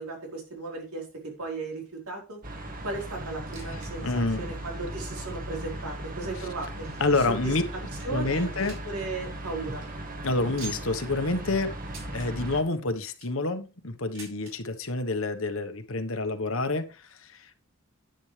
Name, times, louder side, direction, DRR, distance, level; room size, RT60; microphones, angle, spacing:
voice 1, 0.0-2.4 2.8-4.1 4.4-6.9 7.3-7.5 8.0-9.8, right 3 dB, 85° right, 0 dB, 4.1 m, -36 dB
sound 1, 2.4-12.6, right 1 dB, 40° right, 1.8 m, -37 dB
sound 2, 3.4-3.9 4.2-4.3 5.0-5.1 5.8-7.2 7.7-7.8 8.0-9.0 9.3-9.4 9.7-9.9 10.6-11.0 11.9-12.3 12.9-13.4 14.1-14.5 15.5-15.6 15.8-15.9 16.7-16.8, right 4 dB, 65° right, 5.3 m, -46 dB
voice 2, 3.7-4.5 6.4-6.5 7.0-7.6 8.1-8.8 10.2-11.7 12.1-17.5, left 2 dB, 70° left, 8 dB, 1.3 m, -28 dB
10.5 x 9.4 x 3.3 m, 0.32 s
head